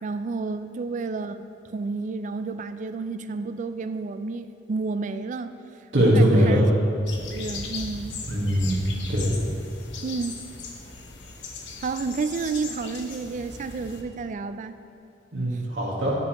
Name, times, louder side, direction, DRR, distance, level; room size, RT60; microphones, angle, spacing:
voice 1, 0.0-1.4 1.7-5.5 6.1-6.7 7.1-8.2 10.0-10.3 11.8-14.7 15.5-15.6, right 4 dB, 40° right, 11 dB, 0.3 m, -30 dB
voice 2, 5.9-6.6 8.3-8.8 9.1-9.3 15.3-16.2, equal, 75° right, -5 dB, 1.6 m, -21 dB
sound 1, 7.1-14.0, left 3 dB, 70° left, 0.9 m, -38 dB
9.7 x 8.5 x 3.0 m, 2.5 s
head